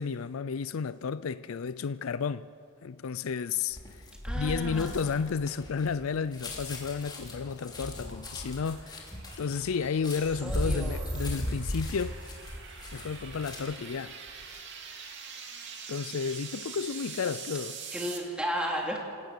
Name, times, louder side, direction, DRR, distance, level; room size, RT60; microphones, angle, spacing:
voice 1, 0.0-2.5 2.8-4.1 4.3-9.1 9.4-12.2 12.9-14.2 15.9-17.8, left 6 dB, 80° left, 0.5 m, -32 dB
sound 1, 3.7-13.9 14.3-14.6, equal, 20° left, 3.1 m, -37 dB
voice 2, 4.2-5.2 10.4-11.1 17.9-19.0, equal, 5° right, 3.1 m, -34 dB
sound 2, 6.8-18.2, right 6 dB, 60° right, 2.5 m, -45 dB
26.5 x 17.0 x 6.8 m
head